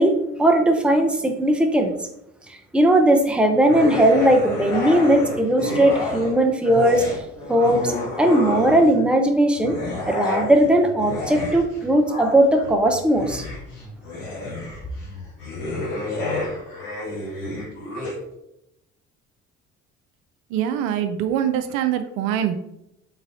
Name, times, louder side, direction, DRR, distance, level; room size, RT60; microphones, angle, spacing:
voice 1, 0.0-1.9 2.7-7.1 7.5-9.8 10.1-13.4, right 1 dB, 5° right, 4 dB, 0.6 m, -18 dB
sound 1, 3.7-6.3 6.6-9.0 9.5-18.1, left 2 dB, 70° left, 1.4 m, -30 dB
voice 2, 20.5-22.6, right 10 dB, 70° right, 8 dB, 0.5 m, -24 dB
4.0 x 3.7 x 2.7 m, 0.83 s
hypercardioid pair, 50°, 35 cm